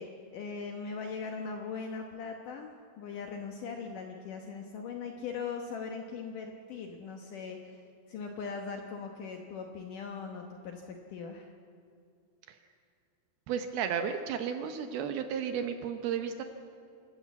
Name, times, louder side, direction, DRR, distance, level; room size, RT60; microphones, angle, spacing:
voice 1, 0.0-7.8 8.1-11.5, left 5 dB, 70° left, 3 dB, 2.1 m, -40 dB
voice 2, 13.5-16.4, right 7 dB, 75° right, 7 dB, 2.4 m, -33 dB
27.5 x 13.0 x 8.3 m, 2.3 s
omnidirectional pair, 5.1 m